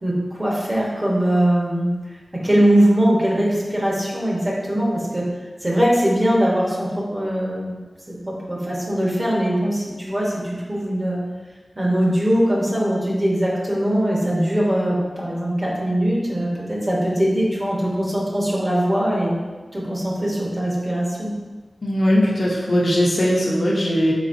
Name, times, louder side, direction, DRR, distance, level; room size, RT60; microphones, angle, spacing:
voice 1, 0.0-1.9 2.3-5.3 5.6-7.8 8.1-11.2 11.8-19.4 19.7-21.3, right 1 dB, 25° right, -4 dB, 1.0 m, -21 dB
voice 2, 21.8-24.1, equal, 50° left, -5 dB, 0.7 m, -19 dB
4.0 x 3.8 x 2.6 m, 1.3 s
wide cardioid pair, 85°, 0 cm